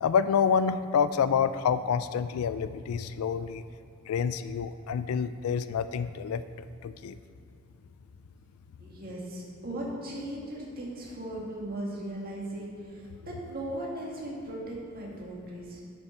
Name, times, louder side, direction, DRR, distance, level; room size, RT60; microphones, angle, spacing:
voice 1, 0.0-3.6 4.1-6.4 6.8-7.2, left 6 dB, 90° left, 13 dB, 0.3 m, -27 dB
voice 2, 8.8-15.8, right 1 dB, 45° right, -4 dB, 2.0 m, -38 dB
9.9 x 5.6 x 4.4 m, 2.6 s
head